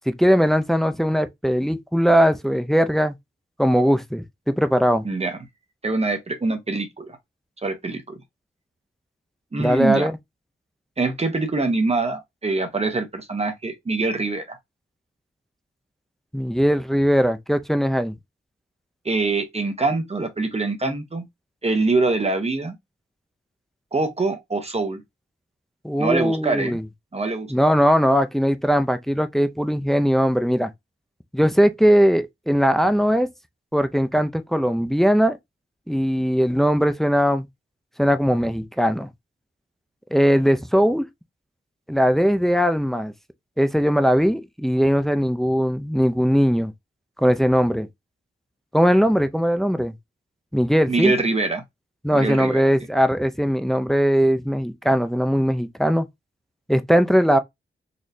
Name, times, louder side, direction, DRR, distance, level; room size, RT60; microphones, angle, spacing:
voice 1, 0.0-3.2 3.6-5.0 9.6-10.2 16.3-18.1 25.8-26.8 27.5-30.7 31.3-33.3 33.7-35.4 35.9-37.5 38.0-39.1 40.1-41.1 41.9-43.1 43.6-46.7 47.2-47.9 48.7-49.9 50.5-51.1 52.0-56.1 56.7-57.4, equal, ahead, 0.3 m, -20 dB
voice 2, 5.0-5.4 5.8-7.2 7.6-8.2 9.5-10.1 11.0-14.6 19.0-21.2 21.6-22.7 23.9-25.0 26.0-26.8 27.1-27.5 50.9-51.6 52.1-52.6, right 3 dB, 30° right, 0.8 m, -24 dB
4.2 x 3.0 x 2.5 m
wide cardioid pair, 155°, 21 cm